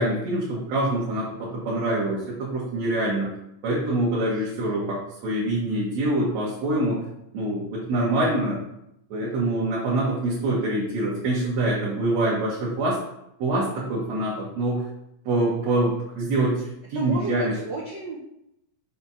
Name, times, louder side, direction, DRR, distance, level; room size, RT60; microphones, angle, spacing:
voice 1, 0.0-3.3 3.6-7.0 7.3-8.6 9.1-13.0 13.4-14.8 15.3-17.5, right 1 dB, 65° right, -7 dB, 2.3 m, -25 dB
voice 2, 16.9-18.2, right 3 dB, 85° right, -4 dB, 0.9 m, -32 dB
5.8 x 3.4 x 5.5 m, 0.80 s
omnidirectional pair, 3.3 m